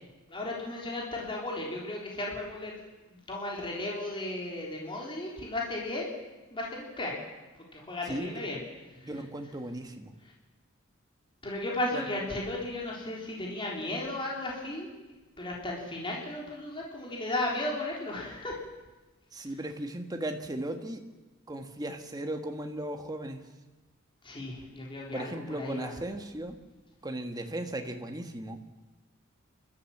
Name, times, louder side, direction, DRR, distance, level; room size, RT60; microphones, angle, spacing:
voice 1, 0.3-2.7 3.3-6.1 6.5-7.1 7.7-8.6 11.4-14.9 15.4-18.5 24.2-25.9, left 1 dB, 25° left, -3 dB, 4.0 m, -35 dB
voice 2, 8.0-8.4 9.0-10.1 11.9-12.1 19.3-21.0 21.5-23.4 25.1-26.6 27.0-28.6, right 1 dB, 20° right, 5 dB, 1.6 m, -36 dB
29.0 x 13.5 x 7.4 m, 1.2 s
head